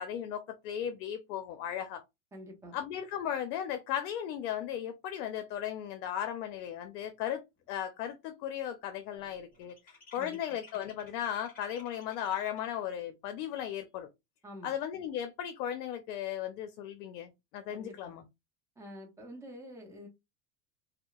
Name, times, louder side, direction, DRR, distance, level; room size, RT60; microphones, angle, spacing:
voice 1, 0.0-2.0 2.7-7.4 7.7-9.8 10.1-14.1 14.6-18.2, left 10 dB, 70° left, 0.6 m, -36 dB
voice 2, 2.3-2.8 10.2-10.6 14.4-14.7 17.7-18.1 18.8-20.1, equal, 5° right, 0.5 m, -48 dB
sound 1, 7.1-7.2 7.6-7.9 8.2-12.8, left 3 dB, 20° left, 1.4 m, -57 dB
2.7 x 2.0 x 2.3 m
supercardioid pair, 115°, 49 cm